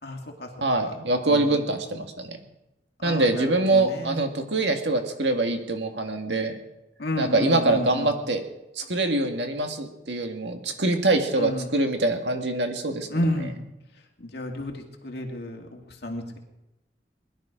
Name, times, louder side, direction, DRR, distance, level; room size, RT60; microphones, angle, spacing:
voice 1, 0.0-0.7 1.3-1.5 3.0-4.2 7.0-8.1 11.4-11.7 13.1-13.5 14.2-16.4, left 1 dB, 65° left, 2 dB, 2.5 m, -31 dB
voice 2, 0.6-2.4 3.0-6.6 7.2-8.4 8.8-13.5, right 2 dB, 75° right, 5 dB, 2.0 m, -24 dB
21.0 x 12.0 x 5.2 m, 0.94 s
head